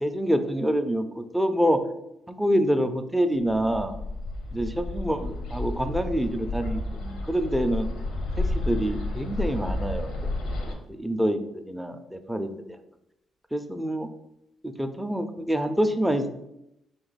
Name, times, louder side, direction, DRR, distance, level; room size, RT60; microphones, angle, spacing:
voice 1, 0.0-1.8 2.3-3.9 4.5-7.9 8.4-10.3 10.9-12.8 13.5-14.1 14.6-16.3, equal, 5° right, 7 dB, 0.4 m, -26 dB
Bird, 3.5-10.7, left 2 dB, 85° left, 0.8 m, -31 dB
4.0 x 3.0 x 4.0 m, 0.83 s
cardioid pair, 90°, 0 cm